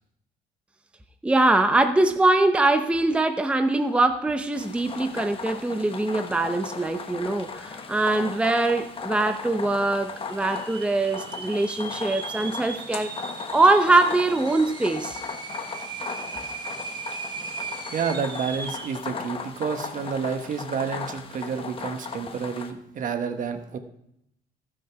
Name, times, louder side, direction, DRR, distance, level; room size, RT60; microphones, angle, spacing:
voice 1, 1.2-15.2, right 2 dB, 5° right, 7 dB, 0.6 m, -23 dB
sound 1, 4.5-22.7, left 5 dB, 35° left, 1.1 m, -37 dB
sound 2, 8.1-8.2 8.4-9.0 9.5-9.6 10.3-19.0, right 4 dB, 25° right, 1.2 m, -38 dB
voice 2, 17.9-23.8, right 6 dB, 50° right, 8 dB, 1.2 m, -29 dB
14.5 x 6.4 x 4.6 m, 0.77 s
cardioid pair, 110°, 17 cm